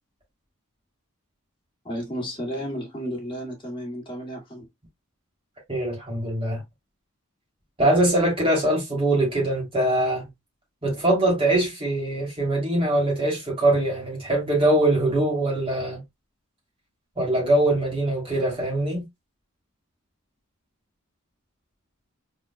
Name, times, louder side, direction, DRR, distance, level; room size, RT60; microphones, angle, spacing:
voice 1, 1.8-4.7, equal, 25° left, 2.1 m, -32 dB
voice 2, 5.7-6.6 7.8-10.3 10.8-16.0 17.2-19.1, right 1 dB, 25° right, 3.0 m, -22 dB
4.4 x 4.2 x 2.2 m
head